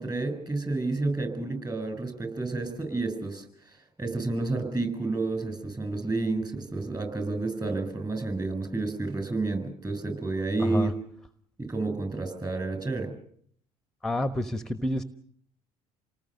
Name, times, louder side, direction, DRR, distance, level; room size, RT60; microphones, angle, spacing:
voice 1, 0.0-10.9 11.6-13.1, right 3 dB, 20° right, 7 dB, 7.8 m, -30 dB
voice 2, 10.6-10.9 14.0-15.0, left 1 dB, 5° left, 12 dB, 1.1 m, -28 dB
29.0 x 19.5 x 6.7 m, 0.62 s
figure-of-eight pair, 60°, 19 cm